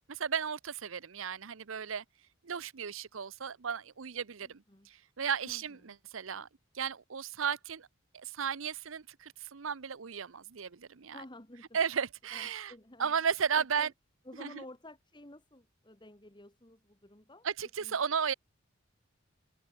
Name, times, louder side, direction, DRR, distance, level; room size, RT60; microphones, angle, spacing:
voice 1, 0.1-2.0 2.4-6.5 6.7-7.9 8.1-11.2 11.7-12.7 13.0-13.9 14.4-14.6 17.4-18.3, right 7 dB, 80° right, 0.8 m, -34 dB
voice 2, 4.4-4.9 5.4-6.0 11.1-11.8 12.3-13.1 13.6-13.9 14.2-17.5 17.8-18.2, left 1 dB, 20° left, 2.8 m, -52 dB
open air
head